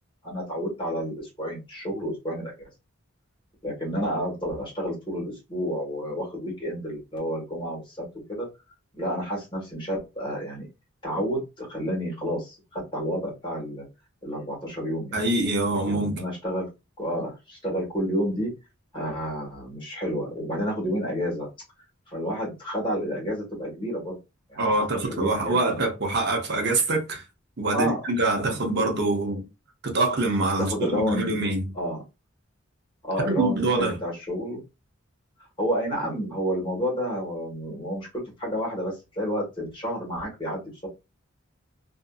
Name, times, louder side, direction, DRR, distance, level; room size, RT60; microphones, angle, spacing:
voice 1, 0.2-2.5 3.6-8.0 8.3-8.5 9.0-10.7 11.0-13.9 14.2-15.2 15.7-16.7 17.0-18.5 18.9-21.5 22.1-24.2 24.5-25.8 27.7-28.0 28.3-28.9 30.6-31.3 31.7-32.0 33.0-34.6 35.6-40.9, equal, 25° left, 1.3 m, -30 dB
voice 2, 15.1-16.2 24.6-27.2 27.6-29.5 29.8-31.7 33.2-34.0, right 2 dB, 55° right, 0.7 m, -25 dB
2.6 x 2.5 x 2.3 m
head